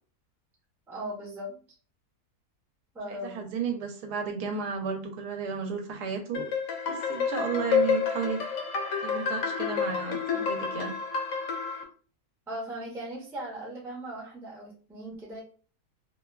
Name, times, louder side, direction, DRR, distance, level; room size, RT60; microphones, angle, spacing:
voice 1, 0.9-1.6 2.9-3.5 12.5-15.4, right 1 dB, 5° right, -4 dB, 0.3 m, -38 dB
voice 2, 3.1-6.5 6.9-8.4 9.0-10.9, right 6 dB, 85° right, 4 dB, 1.2 m, -33 dB
sound 1, 6.3-11.8, left 6 dB, 70° left, 0.9 m, -29 dB
2.8 x 2.2 x 2.2 m, 0.40 s
omnidirectional pair, 1.7 m